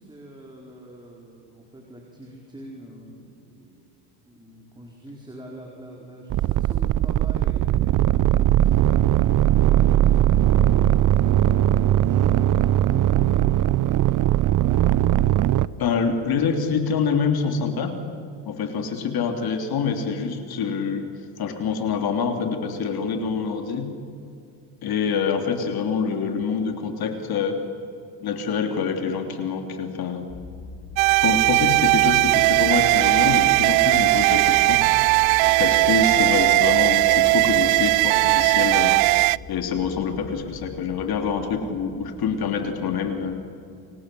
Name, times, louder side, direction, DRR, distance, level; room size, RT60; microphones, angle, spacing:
voice 1, 0.0-3.9 4.2-15.2, right 1 dB, 10° right, -1 dB, 4.6 m, -44 dB
sound 1, 6.3-15.7, right 12 dB, 45° right, 0.7 m, -19 dB
voice 2, 15.7-17.9 18.5-23.8 24.8-27.6 28.2-30.3 31.1-34.8 35.6-38.9 39.5-43.4, left 5 dB, 50° left, 5 dB, 3.4 m, -26 dB
sound 2, 30.3-43.5, left 4 dB, 20° left, 3.1 m, -40 dB
sound 3, 31.0-39.4, right 26 dB, 90° right, 0.6 m, -18 dB
30.0 x 24.5 x 7.8 m, 2.5 s
cardioid pair, 120°, 46 cm